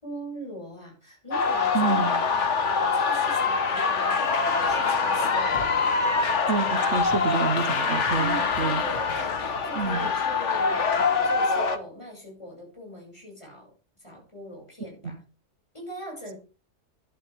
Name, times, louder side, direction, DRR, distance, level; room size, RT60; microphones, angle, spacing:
voice 1, 0.0-5.9 8.2-13.7 14.0-15.2 15.7-16.3, right 1 dB, 25° left, -1 dB, 7.1 m, -41 dB
sound 1, 1.3-11.8, left 5 dB, 80° left, 1.7 m, -24 dB
voice 2, 1.7-2.1 6.5-8.8 9.7-10.1 15.0-15.2, right 5 dB, 75° right, 11 dB, 1.5 m, -28 dB
Scratching (performance technique), 4.7-5.3 5.5-5.7 6.2-6.4 6.9-7.1 7.6-8.6 8.9-9.3 9.8-9.9, left 2 dB, 55° left, 2.3 m, -40 dB
12.0 x 11.5 x 3.6 m, 0.35 s
omnidirectional pair, 1.2 m